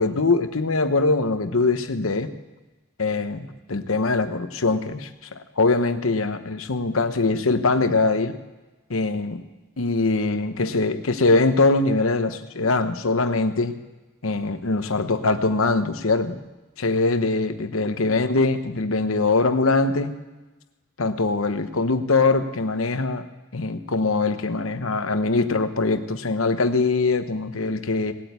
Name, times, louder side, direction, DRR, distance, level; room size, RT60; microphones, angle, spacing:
voice 1, 0.0-2.3 3.0-8.3 8.9-9.4 9.8-13.7 14.2-16.4 16.8-20.1 21.0-23.3 23.5-28.1, left 3 dB, 85° left, 9 dB, 1.0 m, -22 dB
18.0 x 8.8 x 8.2 m, 1.1 s
head